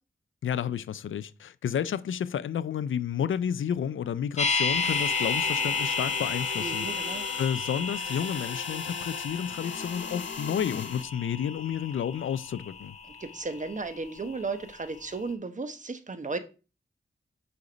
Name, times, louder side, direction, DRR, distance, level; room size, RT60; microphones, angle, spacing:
voice 1, 0.4-6.9 7.4-12.9, left 8 dB, 85° left, 0.5 m, -31 dB
sound 1, 4.4-14.4 14.7-14.8, left 4 dB, 35° left, 1.7 m, -32 dB
sound 2, 4.6-11.0, left 5 dB, 70° left, 1.1 m, -40 dB
voice 2, 6.6-7.3 13.1-16.4, right 3 dB, 40° right, 1.1 m, -35 dB
6.8 x 5.1 x 5.2 m
cardioid pair, 65°, 20 cm